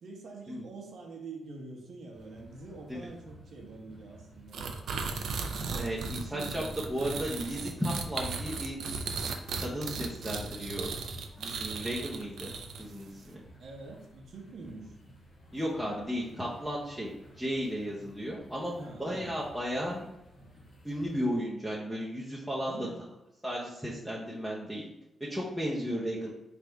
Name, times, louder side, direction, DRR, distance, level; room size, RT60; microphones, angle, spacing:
voice 1, 0.0-4.8 5.6-6.7 13.6-15.0 18.8-19.4 22.7-23.1, right 3 dB, 70° right, 0 dB, 0.9 m, -45 dB
sound 1, 2.1-21.3, equal, 50° left, 1.5 m, -54 dB
sound 2, 4.5-13.0, right 4 dB, 85° right, 0.4 m, -36 dB
voice 2, 5.8-6.6 6.9-8.8 9.6-10.9 11.4-12.5 12.8-13.4 15.5-20.1 20.8-22.9 23.4-24.9 25.3-26.3, equal, ahead, -6 dB, 0.7 m, -34 dB
3.4 x 2.5 x 4.4 m, 0.91 s
cardioid pair, 115°, 0 cm